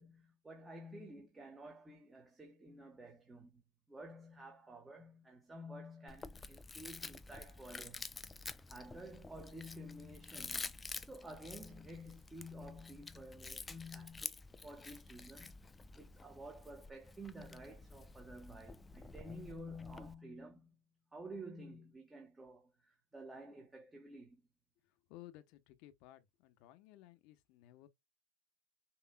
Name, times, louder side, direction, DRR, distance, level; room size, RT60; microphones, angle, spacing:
voice 1, 0.0-3.6 3.9-8.1 8.7-10.8 11.1-15.6 16.0-20.7 21.1-24.4, equal, 15° right, 1.2 m, -51 dB
Chewing mastication, 6.1-20.1, left 3 dB, 15° left, 0.4 m, -49 dB
voice 2, 25.1-27.9, left 15 dB, 60° left, 0.9 m, -57 dB
5.8 x 3.1 x 2.2 m
supercardioid pair, 125°, 0 cm